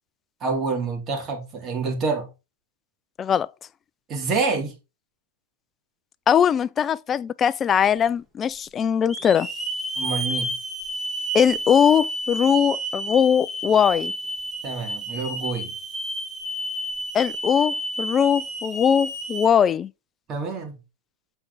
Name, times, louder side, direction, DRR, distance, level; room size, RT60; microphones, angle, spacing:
voice 1, 0.4-2.3 4.1-4.7 10.0-10.5 14.6-15.7 20.3-20.8, right 4 dB, 30° right, 2.6 m, -27 dB
voice 2, 6.3-9.5 11.3-14.1 17.1-19.9, left 8 dB, 25° left, 0.3 m, -20 dB
Hiss / Alarm, 8.0-8.1 9.1-19.5, right 1 dB, 5° right, 1.5 m, -31 dB
7.9 x 4.5 x 4.0 m
hypercardioid pair, 130°, 0 cm